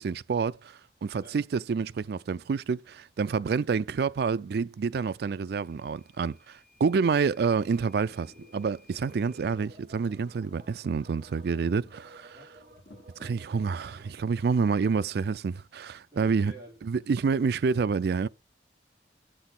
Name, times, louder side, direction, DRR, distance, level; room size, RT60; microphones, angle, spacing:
voice 1, 0.0-12.4 13.2-16.5 16.8-18.3, right 5 dB, 60° right, 0.4 m, -28 dB
sound 1, 5.4-5.5 6.5-6.6 7.0-7.1 7.4-15.0 15.9-16.0 16.2-16.3, left 1 dB, 65° left, 1.8 m, -59 dB
Microwave oven / Alarm, 5.6-9.6, left 2 dB, ahead, 4.3 m, -62 dB
sound 2, 7.9-14.3, right 1 dB, 45° right, 1.7 m, -54 dB
voice 2, 12.2-12.5 14.6-14.9 16.1-17.0, right 1 dB, 25° right, 3.2 m, -51 dB
8.1 x 6.2 x 3.8 m
head